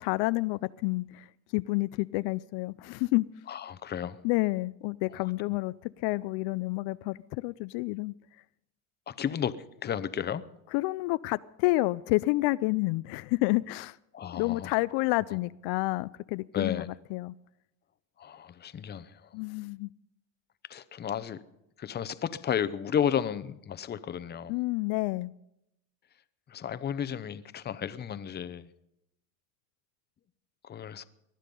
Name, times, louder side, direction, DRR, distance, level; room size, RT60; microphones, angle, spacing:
voice 1, 0.0-3.3 4.2-8.1 10.7-14.0 14.3-16.9 17.1-17.3 19.3-19.9 24.5-25.3, left 21 dB, 70° left, 0.5 m, -29 dB
voice 2, 3.5-4.2 9.1-9.6 9.8-10.4 14.1-14.7 15.3-15.4 16.5-16.9 18.2-19.3 20.7-21.4 21.8-24.5 26.5-28.7 30.6-31.0, left 8 dB, 25° left, 0.7 m, -33 dB
19.5 x 12.0 x 5.3 m
cardioid pair, 125°, 41 cm